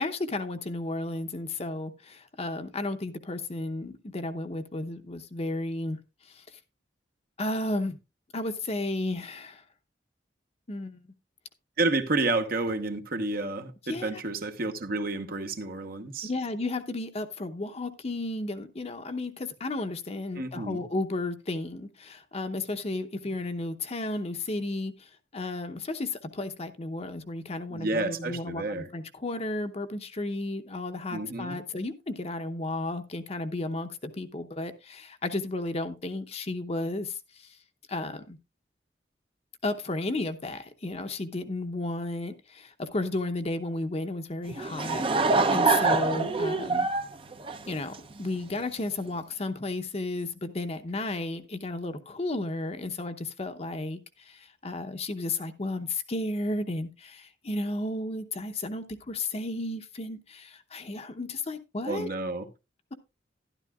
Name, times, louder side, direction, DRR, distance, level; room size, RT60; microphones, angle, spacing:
voice 1, 0.0-6.0 6.3-6.4 7.4-8.0 8.3-9.6 10.7-11.0 13.9-14.2 16.2-37.5 37.9-38.4 39.6-45.0 45.5-46.9 47.6-62.1, left 2 dB, 35° left, 0.8 m, -33 dB
voice 2, 11.8-16.3 20.3-20.8 27.7-28.9 31.1-31.6 61.8-62.5, right 2 dB, 60° right, 1.1 m, -30 dB
Laughter / Crowd, 44.5-48.3, right 3 dB, 30° right, 0.6 m, -25 dB
12.0 x 11.5 x 2.4 m
head